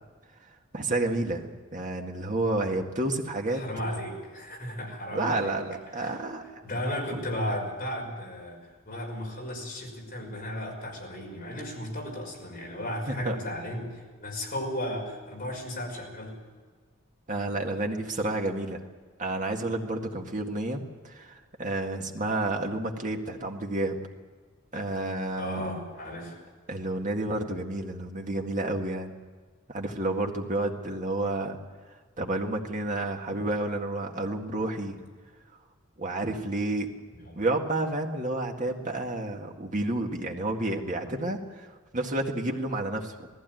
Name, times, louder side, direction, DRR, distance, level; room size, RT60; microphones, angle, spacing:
voice 1, 0.7-3.6 5.1-6.6 13.1-13.4 17.3-18.8 19.2-24.0 24.7-25.7 26.7-29.1 29.7-31.6 31.9-35.0 36.0-36.9 37.4-43.3, right 2 dB, 40° right, 2 dB, 2.0 m, -30 dB
voice 2, 3.5-5.5 6.0-6.2 6.6-16.4 25.4-26.4 37.2-37.4, left 1 dB, 45° left, -1 dB, 5.8 m, -35 dB
19.0 x 15.5 x 9.2 m, 1.5 s
head